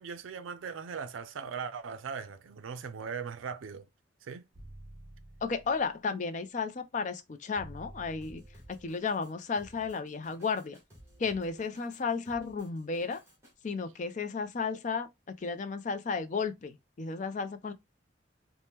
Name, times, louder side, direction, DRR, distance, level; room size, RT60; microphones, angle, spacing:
voice 1, 0.0-3.9 4.2-4.5, right 6 dB, 85° right, 0.4 m, -39 dB
sound 1, 4.5-6.0 7.6-9.0, right 1 dB, 35° right, 0.6 m, -50 dB
voice 2, 5.4-8.4 8.7-10.8 11.2-13.2 13.6-15.1 15.4-17.7, left 5 dB, 40° left, 0.4 m, -33 dB
Drum kit, 8.2-13.5, equal, 15° right, 1.1 m, -57 dB
2.8 x 2.1 x 3.4 m
head